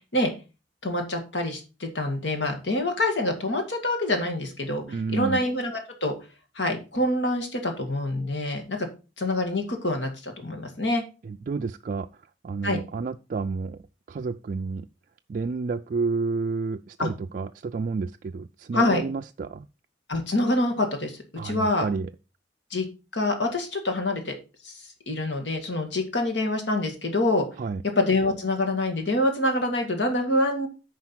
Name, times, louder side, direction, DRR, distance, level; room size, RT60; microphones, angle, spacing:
voice 1, 0.8-4.8 5.1-6.2 6.6-8.9 9.2-11.0 12.6-12.8 17.0-17.1 18.7-19.0 20.1-21.9 22.7-22.9 23.1-24.3 24.6-24.7 25.1-27.5 28.0-30.7, left 1 dB, 80° left, 5 dB, 2.1 m, -26 dB
voice 2, 4.9-5.4 11.2-12.1 12.4-13.8 14.1-14.9 15.3-19.7 21.4-22.1 27.6-27.8, right 4 dB, 50° right, 6 dB, 0.3 m, -30 dB
9.6 x 5.1 x 4.5 m, 0.31 s
head